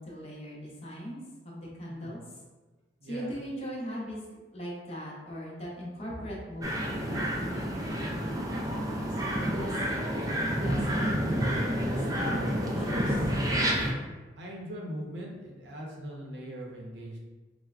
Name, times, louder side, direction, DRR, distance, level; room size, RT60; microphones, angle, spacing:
voice 1, 0.0-2.2 3.0-4.2 4.5-9.8 10.5-13.2, equal, 35° left, -4 dB, 0.7 m, -40 dB
voice 2, 1.9-2.2 3.0-3.3 14.4-17.2, equal, 65° right, -2 dB, 0.6 m, -41 dB
sound 1, 6.6-13.9, equal, 20° right, 0.3 m, -29 dB
4.5 x 2.1 x 2.4 m, 1.3 s
head